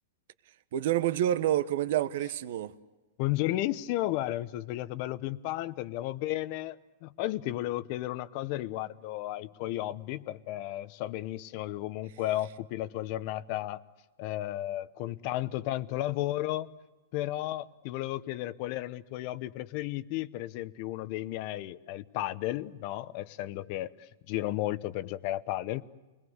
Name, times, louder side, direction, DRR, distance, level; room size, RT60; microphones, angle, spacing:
voice 1, 0.7-2.7, right 12 dB, 60° right, 13 dB, 1.1 m, -28 dB
voice 2, 3.2-13.8 14.2-16.7 17.1-25.8, left 15 dB, 40° left, 15 dB, 0.9 m, -33 dB
29.5 x 21.0 x 8.0 m, 1.1 s
supercardioid pair, 155°, 0 cm